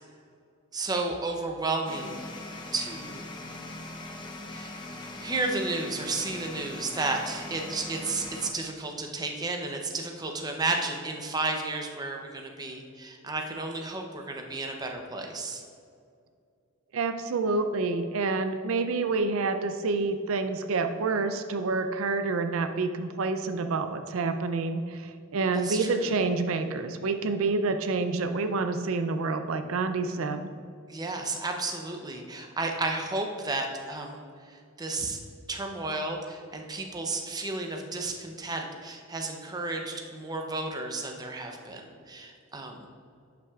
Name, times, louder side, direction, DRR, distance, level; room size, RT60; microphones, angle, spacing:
voice 1, 0.7-2.3 2.7-3.2 4.5-4.8 5.2-15.6 25.5-26.1 30.9-34.2 34.8-35.2 35.5-42.8, right 3 dB, 20° right, 3 dB, 0.6 m, -32 dB
sound 1, 1.9-8.5, left 2 dB, 20° left, 0.6 m, -41 dB
voice 2, 16.9-30.5, right 3 dB, 80° right, 8 dB, 0.4 m, -28 dB
11.0 x 5.9 x 2.4 m, 2.3 s
head